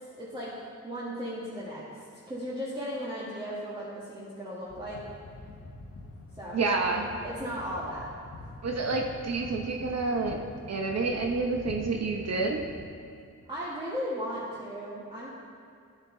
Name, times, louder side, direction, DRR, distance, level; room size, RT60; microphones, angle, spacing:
voice 1, 0.1-5.0 6.3-6.6 7.2-8.1 13.5-15.3, equal, 15° right, -9 dB, 1.6 m, -36 dB
sound 1, 4.6-12.9, left 2 dB, 45° left, 1.4 m, -45 dB
voice 2, 6.5-7.1 8.6-10.4 10.7-12.6, right 3 dB, 55° right, 2 dB, 0.8 m, -28 dB
10.0 x 7.3 x 3.8 m, 2.4 s
cardioid pair, 90°, 32 cm